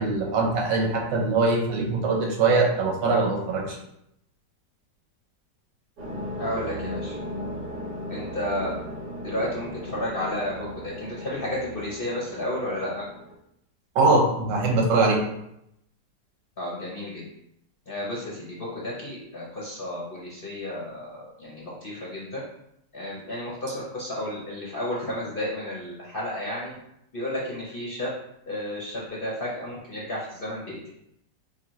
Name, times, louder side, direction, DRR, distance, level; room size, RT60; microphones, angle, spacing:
voice 1, 0.0-3.8 13.9-15.2, right 3 dB, 90° right, 0 dB, 1.6 m, -22 dB
sound 1, 6.0-13.3, equal, 75° right, 1.8 m, -36 dB
voice 2, 6.4-7.2 8.1-8.7 9.2-13.0 16.6-17.2 17.9-22.4 22.9-26.7 27.1-28.1 28.5-30.9, left 1 dB, 45° left, -5 dB, 0.7 m, -32 dB
5.7 x 2.3 x 3.0 m, 0.78 s
omnidirectional pair, 1.9 m